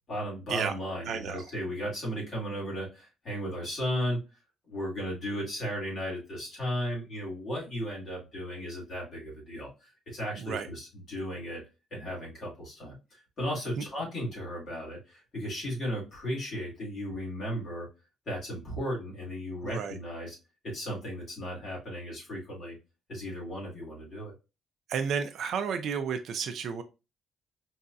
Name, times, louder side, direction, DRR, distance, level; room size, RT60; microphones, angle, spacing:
voice 1, 0.1-4.2 4.7-11.6 11.9-17.9 18.3-20.4 20.6-22.8 23.1-24.3, equal, 40° left, -4 dB, 1.9 m, -35 dB
voice 2, 1.1-1.4 10.4-10.7 13.8-13.9 19.6-19.9 24.9-26.8, right 6 dB, 55° right, 8 dB, 0.4 m, -32 dB
4.7 x 2.6 x 2.2 m, 0.28 s
cardioid pair, 165°, 0 cm